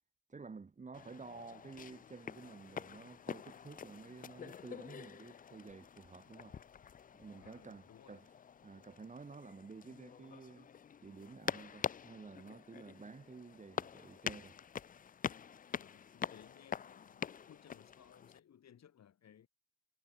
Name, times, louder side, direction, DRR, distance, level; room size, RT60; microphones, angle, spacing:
voice 1, 0.3-6.6 7.1-8.3 8.6-10.7 11.0-14.6, right 4 dB, 25° right, 1.4 m, -52 dB
sound 1, 0.9-18.4, left 7 dB, 30° left, 0.4 m, -46 dB
voice 2, 7.3-8.2 15.7-19.5, left 9 dB, 60° left, 7.5 m, -62 dB
cardioid pair, 90°, 30 cm